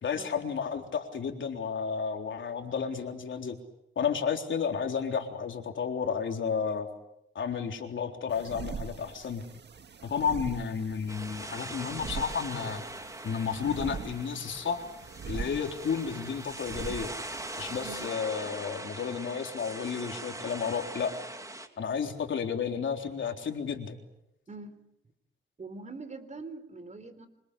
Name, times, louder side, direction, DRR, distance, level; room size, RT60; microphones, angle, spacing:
voice 1, 0.0-3.6 4.0-6.9 7.3-9.4 10.0-12.8 13.2-14.9 15.3-17.1 17.6-21.1 21.8-24.0, left 6 dB, 70° left, 4 dB, 3.8 m, -32 dB
sound 1, 8.3-18.1, right 6 dB, 55° right, 1.8 m, -43 dB
sound 2, 11.1-21.7, right 2 dB, 15° right, 2.8 m, -41 dB
voice 2, 24.5-24.8 25.6-27.3, right 3 dB, 35° right, 10 dB, 3.9 m, -43 dB
26.0 x 26.0 x 8.3 m, 0.81 s
cardioid pair, 95°, 21 cm